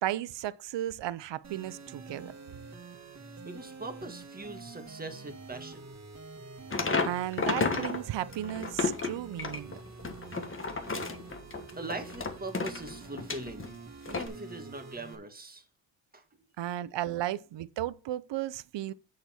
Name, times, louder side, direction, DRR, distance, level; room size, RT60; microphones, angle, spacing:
voice 1, 0.0-2.3 7.1-9.8 16.6-18.9, right 13 dB, 70° right, 0.7 m, -34 dB
sound 1, 1.4-15.2, right 4 dB, 35° right, 2.0 m, -47 dB
voice 2, 3.4-5.9 11.8-13.8 14.1-15.7 16.1-16.2, right 2 dB, 20° right, 1.6 m, -41 dB
sound 2, 6.7-8.0 8.3-13.7 14.1-14.3, left 4 dB, 25° left, 1.3 m, -32 dB
8.1 x 6.8 x 4.4 m
wide cardioid pair, 125°, 45 cm